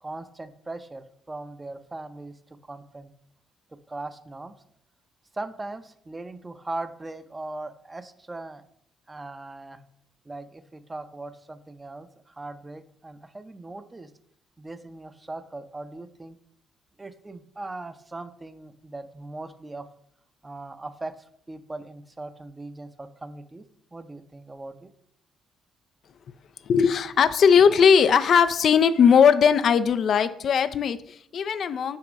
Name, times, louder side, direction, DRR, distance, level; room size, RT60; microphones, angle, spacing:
voice 1, 0.0-3.1 3.7-4.5 5.3-8.6 9.1-9.8 10.2-14.1 14.6-16.4 17.0-19.9 20.4-21.2 21.5-24.9, right 2 dB, 25° right, 10 dB, 0.6 m, -39 dB
voice 2, 26.7-32.0, left 7 dB, 55° left, 12 dB, 0.3 m, -19 dB
6.6 x 3.0 x 5.1 m, 0.67 s
hypercardioid pair, 45°, 0 cm